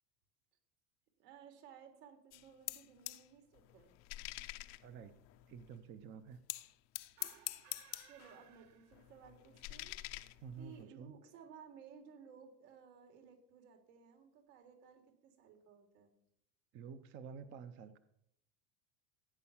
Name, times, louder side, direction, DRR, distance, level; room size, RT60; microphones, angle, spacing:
voice 1, 1.2-3.9 8.0-10.3 10.6-16.1, right 7 dB, 75° right, 5 dB, 4.0 m, -58 dB
sound 1, 2.3-3.3 3.5-5.8 6.5-8.4 8.7-10.8, left 20 dB, 35° left, 0.5 m, -46 dB
voice 2, 4.8-5.1 5.5-6.4 10.4-11.1 16.7-18.0, right 6 dB, 25° right, 12 dB, 0.5 m, -50 dB
sound 2, 7.1-9.4, right 11 dB, 50° right, 1.4 m, -62 dB
15.5 x 9.5 x 7.2 m, 0.74 s
cardioid pair, 170°, 48 cm